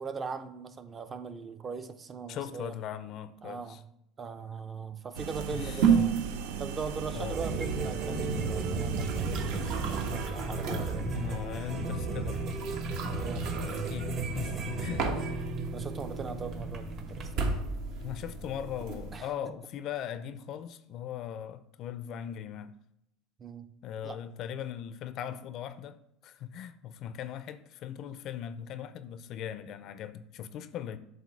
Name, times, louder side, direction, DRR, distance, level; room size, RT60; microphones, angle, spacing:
voice 1, 0.0-2.7 3.4-3.8 4.2-6.2 6.6-11.1 13.2-13.9 14.5-15.1 15.7-17.6 19.1-19.6 23.4-23.7 24.0-24.2, right 5 dB, 25° right, 0.6 m, -40 dB
voice 2, 2.3-3.8 5.5-6.1 7.1-7.4 11.1-12.4 13.6-15.1 18.0-22.8 23.8-31.0, left 9 dB, 50° left, 0.5 m, -39 dB
sound 1, 5.1-10.3, right 8 dB, 80° right, 0.6 m, -38 dB
sound 2, 5.3-19.2, right 5 dB, 65° right, 1.2 m, -34 dB
sound 3, 7.3-17.3, right 3 dB, 40° right, 1.2 m, -35 dB
7.7 x 2.7 x 5.9 m
supercardioid pair, 115°, 0 cm